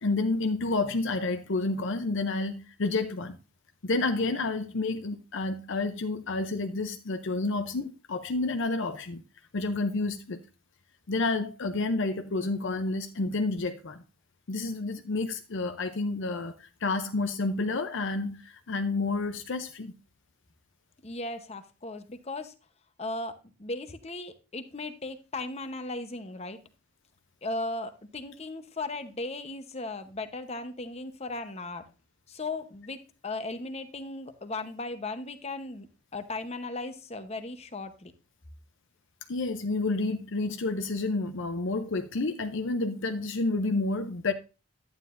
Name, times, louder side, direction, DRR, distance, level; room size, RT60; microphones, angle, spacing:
voice 1, 0.0-3.4 3.8-9.2 9.5-10.4 11.1-14.0 14.5-19.9 39.3-44.3, left 3 dB, 55° left, 0.6 m, -30 dB
voice 2, 21.0-22.5 23.0-23.3 23.6-26.6 27.4-31.8 32.3-35.9 36.1-38.1, left 2 dB, 30° left, 0.9 m, -37 dB
11.5 x 9.5 x 2.6 m
head